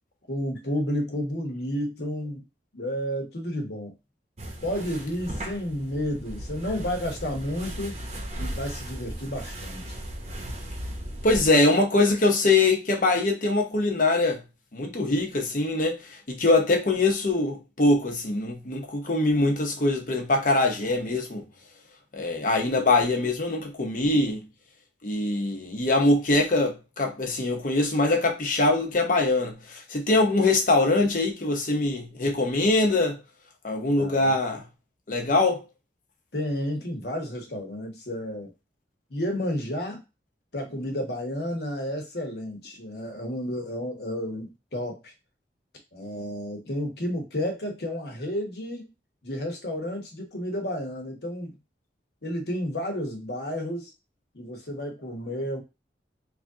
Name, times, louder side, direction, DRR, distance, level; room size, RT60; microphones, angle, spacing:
voice 1, 0.3-2.4 2.7-3.9 4.6-7.9 8.4-10.0 34.0-34.4 36.3-38.5 39.1-40.0 40.5-45.1 45.9-48.9 49.2-51.5 52.2-53.9 54.3-55.6, equal, 65° left, 1.1 m, -31 dB
sound 1, 4.4-11.5, right 1 dB, 35° right, 0.8 m, -36 dB
voice 2, 11.2-14.4 14.7-21.4 22.1-24.4 25.0-33.2 33.6-34.6 35.1-35.6, left 2 dB, 45° left, 0.8 m, -23 dB
3.2 x 2.6 x 3.6 m
head